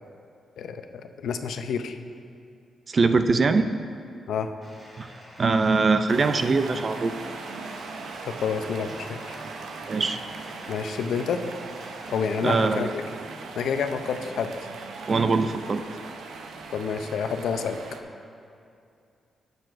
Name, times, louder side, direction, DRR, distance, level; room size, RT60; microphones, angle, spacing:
voice 1, 0.6-2.0 4.3-4.5 8.3-9.2 10.7-11.4 12.1-13.0 13.5-14.5 16.7-17.8, left 6 dB, 80° left, 7 dB, 0.5 m, -28 dB
voice 2, 2.9-3.7 5.0-5.1 5.4-7.1 9.9-10.2 12.4-13.0 15.1-15.8, right 4 dB, 30° right, 9 dB, 0.3 m, -22 dB
Bathtub (filling or washing), 4.6-12.6, equal, 10° right, 2.0 m, -48 dB
sound 1, 6.1-18.0, right 4 dB, 85° right, 0.7 m, -39 dB
13.5 x 7.8 x 2.5 m, 2.5 s
wide cardioid pair, 165°, 0 cm